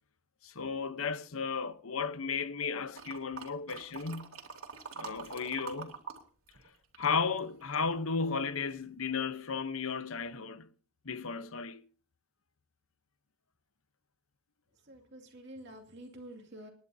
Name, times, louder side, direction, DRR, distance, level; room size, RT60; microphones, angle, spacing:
voice 1, 0.4-4.4 4.9-5.9 7.0-10.7 11.0-11.8, left 5 dB, 75° left, 0.9 m, -34 dB
sound 1, 2.9-6.2 6.5-7.9 8.4-8.5, right 5 dB, 75° right, 3.1 m, -45 dB
voice 2, 14.8-16.7, right 1 dB, 55° right, 2.4 m, -48 dB
28.0 x 11.0 x 2.8 m
head